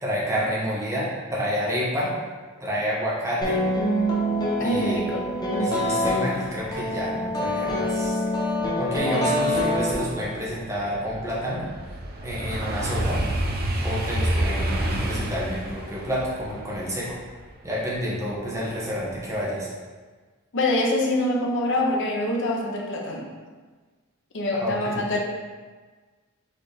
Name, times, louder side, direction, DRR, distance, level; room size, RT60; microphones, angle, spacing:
voice 1, 0.0-2.2 2.6-3.6 4.6-5.0 5.6-8.2 8.8-11.7 12.2-13.2 13.8-17.2 17.6-19.7 24.5-25.0, equal, 15° right, -7 dB, 1.0 m, -29 dB
sound 1, 3.4-10.5, equal, 20° left, 0.8 m, -25 dB
voice 2, 4.6-5.2 20.5-23.3 24.3-25.2, left 1 dB, 55° left, -1 dB, 0.7 m, -25 dB
sound 2, 10.2-18.6 19.0-19.4, right 1 dB, 45° right, 0.5 m, -29 dB
4.0 x 3.8 x 3.3 m, 1.4 s
head